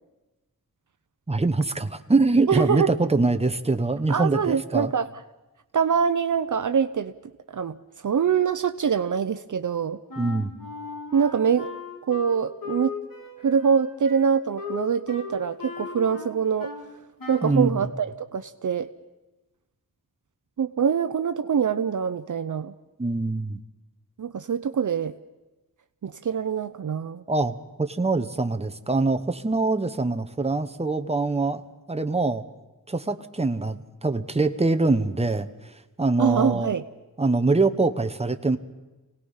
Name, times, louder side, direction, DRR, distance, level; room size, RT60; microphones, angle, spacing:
voice 1, 1.3-4.9 10.2-10.5 17.4-17.9 23.0-23.6 27.3-31.6 31.9-32.4 32.9-35.5 36.0-36.7 37.2-38.6, right 3 dB, 15° right, 8 dB, 1.0 m, -24 dB
voice 2, 2.5-2.9 4.1-5.1 5.7-7.1 7.5-10.0 11.1-11.7 12.1-12.9 13.4-16.7 17.3-18.9 20.6-22.7 24.2-25.1 26.0-27.2 36.2-36.8, right 7 dB, 55° right, 11 dB, 0.6 m, -24 dB
Wind instrument woodwind instrument, 10.1-16.9 17.2-17.6, left 4 dB, 70° left, 3.4 m, -37 dB
27.0 x 18.5 x 5.6 m, 1.1 s
wide cardioid pair, 95°, 35 cm